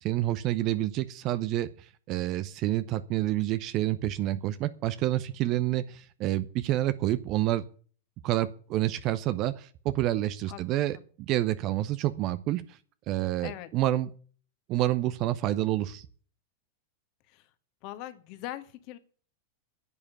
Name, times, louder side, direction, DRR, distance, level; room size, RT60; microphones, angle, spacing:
voice 1, 0.0-1.7 2.1-7.6 8.2-12.6 13.1-14.1 14.7-16.1, right 14 dB, 40° right, 13 dB, 0.8 m, -28 dB
voice 2, 17.8-19.0, left 14 dB, 45° left, 10 dB, 1.6 m, -41 dB
11.0 x 8.7 x 8.4 m, 0.43 s
figure-of-eight pair, 90°, 0 cm